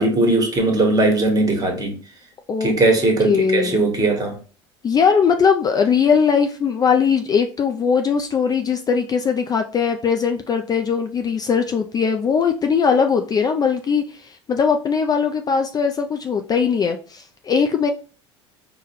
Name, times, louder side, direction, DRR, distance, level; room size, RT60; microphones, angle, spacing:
voice 1, 0.0-1.9 2.6-4.4, right 2 dB, 25° right, 1.3 m, -19 dB
voice 2, 3.2-3.8 4.8-17.9, left 6 dB, 25° left, 0.4 m, -20 dB
4.5 x 2.2 x 3.0 m
hypercardioid pair, 75°, 15 cm